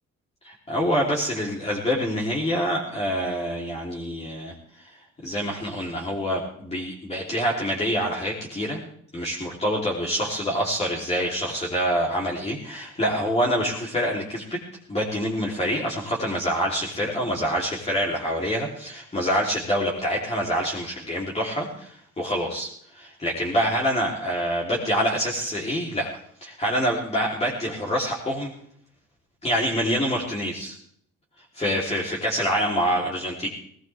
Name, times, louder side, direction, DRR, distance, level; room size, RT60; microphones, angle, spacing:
voice 1, 0.4-4.9 5.2-8.8 9.1-14.6 14.9-26.1 26.4-28.5 29.4-30.7 31.5-33.5, equal, 20° left, -5 dB, 3.5 m, -26 dB
19.0 x 19.0 x 3.5 m, 0.63 s
cardioid pair, 140°, 31 cm